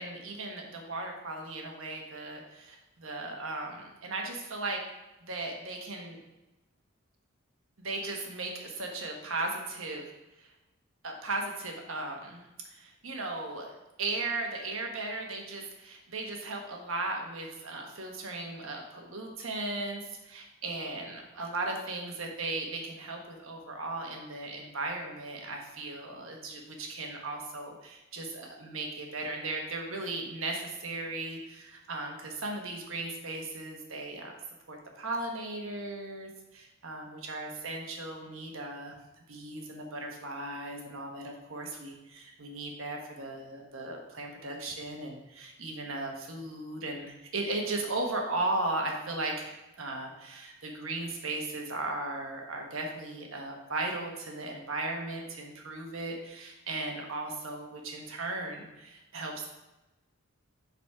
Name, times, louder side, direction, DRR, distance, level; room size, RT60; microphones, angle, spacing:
voice 1, 0.0-4.8 5.2-6.2 7.8-10.1 10.4-10.5 11.0-12.4 12.7-34.3 34.7-39.0 39.3-59.5, right 2 dB, 70° right, 1 dB, 1.3 m, -37 dB
7.3 x 4.1 x 4.8 m, 1.0 s
head